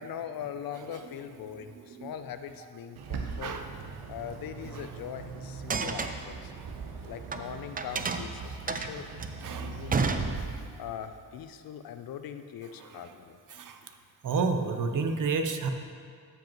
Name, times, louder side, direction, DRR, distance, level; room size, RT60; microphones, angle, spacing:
voice 1, 0.0-3.6 4.1-6.5 7.0-9.1 9.6-10.4 10.7-13.4, left 9 dB, 65° left, 9 dB, 0.5 m, -41 dB
voice 2, 1.6-2.1 3.4-3.6 9.4-9.9 13.5-13.8 14.2-15.7, right 4 dB, 55° right, 6 dB, 0.8 m, -30 dB
Bird, 3.0-10.4, right 5 dB, 85° right, 0.8 m, -41 dB
sound 1, 5.6-7.4 7.8-10.8, right 4 dB, 25° right, 0.4 m, -32 dB
13.0 x 5.3 x 3.0 m, 2.1 s
cardioid pair, 85°, 38 cm